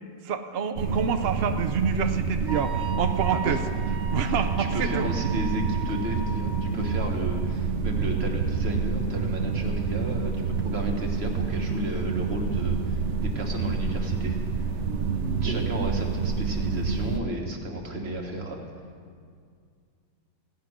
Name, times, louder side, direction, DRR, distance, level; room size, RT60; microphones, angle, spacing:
voice 1, 0.2-3.6 4.1-5.1 14.8-15.6, right 6 dB, 85° right, 7 dB, 0.5 m, -28 dB
sound 1, 0.8-17.2, right 5 dB, 55° right, 0.8 m, -28 dB
Wind instrument woodwind instrument, 2.5-6.9, right 7 dB, 10° left, 1.9 m, -38 dB
voice 2, 4.2-14.4 15.4-18.6, right 1 dB, 40° right, 2 dB, 1.6 m, -33 dB
16.0 x 6.0 x 9.7 m, 2.2 s
omnidirectional pair, 1.9 m